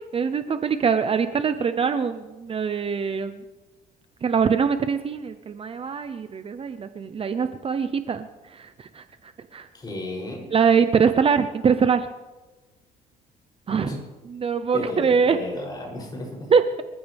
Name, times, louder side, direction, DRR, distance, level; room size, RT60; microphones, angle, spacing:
voice 1, 0.1-3.4 4.2-8.3 8.5-9.0 9.5-9.7 10.5-12.1 13.7-13.9 14.4-15.4 16.5-16.8, right 6 dB, 35° right, 10 dB, 0.8 m, -23 dB
voice 2, 9.7-10.5 13.8-14.0 14.7-16.5, left 2 dB, 25° left, -2 dB, 7.7 m, -33 dB
27.5 x 14.5 x 3.6 m, 1.2 s
cardioid pair, 110°, 17 cm